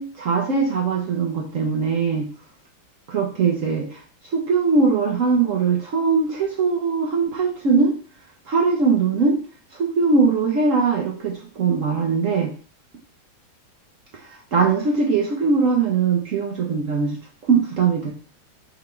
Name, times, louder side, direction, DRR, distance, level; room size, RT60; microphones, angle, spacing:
voice 1, 0.0-2.3 3.1-4.0 4.3-7.9 8.5-9.4 9.7-12.5 14.1-17.2 17.5-18.1, right 5 dB, 60° right, -2 dB, 0.9 m, -21 dB
4.0 x 3.5 x 3.3 m, 0.42 s
omnidirectional pair, 2.0 m